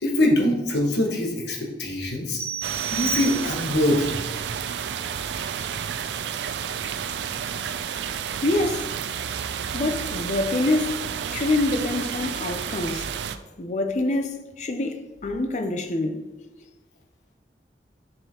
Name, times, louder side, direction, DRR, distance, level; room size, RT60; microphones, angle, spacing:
voice 1, 0.0-2.4 2.9-4.2, left 1 dB, 75° left, 1.3 m, -23 dB
sound 1, 2.4-3.9, right 8 dB, 15° right, 0.6 m, -31 dB
sound 2, 2.6-13.4, right 8 dB, 80° right, 0.4 m, -31 dB
voice 2, 8.4-8.9 9.7-11.0 11.3-13.1 13.6-16.2, left 2 dB, 40° left, 0.6 m, -26 dB
7.5 x 5.7 x 2.9 m
head